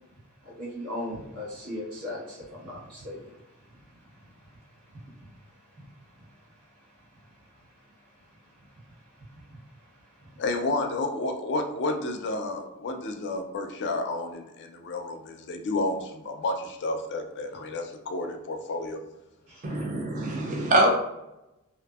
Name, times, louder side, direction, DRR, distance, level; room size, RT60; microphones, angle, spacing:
voice 1, 0.4-10.4 19.5-19.8, left 1 dB, 90° right, -6 dB, 1.2 m, -42 dB
voice 2, 10.4-19.0, left 2 dB, 55° left, 5 dB, 0.4 m, -31 dB
voice 3, 19.6-21.0, right 1 dB, 35° right, 1 dB, 0.4 m, -24 dB
2.5 x 2.5 x 2.3 m, 0.93 s
head